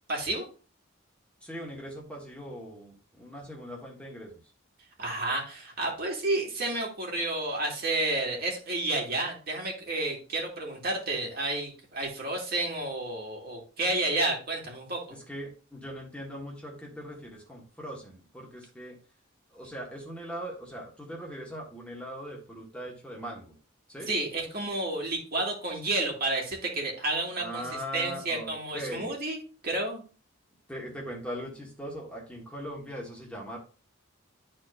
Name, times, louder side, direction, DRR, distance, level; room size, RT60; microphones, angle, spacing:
voice 1, 0.1-0.4 5.0-15.0 24.1-27.6 27.9-30.0, right 2 dB, 50° right, -1 dB, 2.3 m, -31 dB
voice 2, 1.4-4.3 15.1-19.0 19.5-23.6 23.9-24.1 27.4-29.1 30.7-33.6, equal, 5° left, -2 dB, 1.5 m, -40 dB
11.5 x 4.3 x 2.6 m, 0.37 s
head